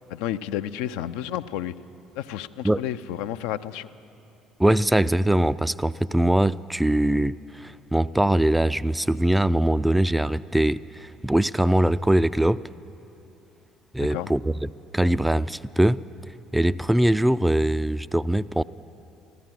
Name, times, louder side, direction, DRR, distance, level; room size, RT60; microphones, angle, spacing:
voice 1, 0.1-1.7 2.2-3.9 14.1-14.3, left 11 dB, 70° left, 11 dB, 0.4 m, -31 dB
voice 2, 4.6-12.7 13.9-16.0 16.5-18.6, right 1 dB, 5° right, 17 dB, 0.3 m, -22 dB
14.5 x 12.0 x 7.6 m, 2.7 s
hypercardioid pair, 55°, 0 cm